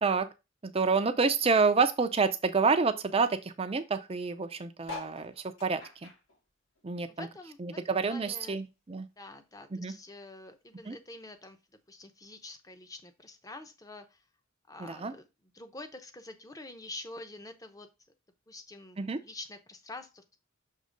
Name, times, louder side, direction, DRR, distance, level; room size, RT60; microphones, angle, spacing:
voice 1, 0.6-6.1 6.8-7.3 7.6-9.1 9.7-9.9 10.8-11.0 14.8-15.1 19.0-19.2, right 4 dB, 30° right, 9 dB, 0.5 m, -28 dB
sound 1, 4.8-7.6 7.9-9.4 9.9-10.0 10.2-10.3 10.5-10.9 11.7-11.8, left 4 dB, 80° left, 2.5 m, -47 dB
voice 2, 7.2-7.6 8.1-8.6 9.2-11.6 11.9-14.1 14.7-15.2 15.5-17.9 18.5-19.0 19.2-20.4, left 2 dB, 15° left, 8 dB, 0.7 m, -46 dB
6.5 x 3.0 x 5.0 m, 0.26 s
head